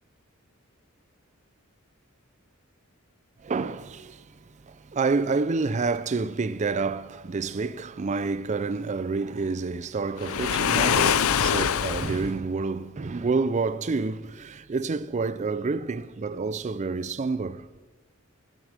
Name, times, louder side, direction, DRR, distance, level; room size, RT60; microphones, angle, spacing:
voice 1, 3.4-4.3 4.6-17.7, right 4 dB, 35° right, 0.4 m, -28 dB
Waves surf, 10.2-12.3, left 8 dB, 80° left, 0.5 m, -24 dB
15.0 x 11.0 x 6.6 m
head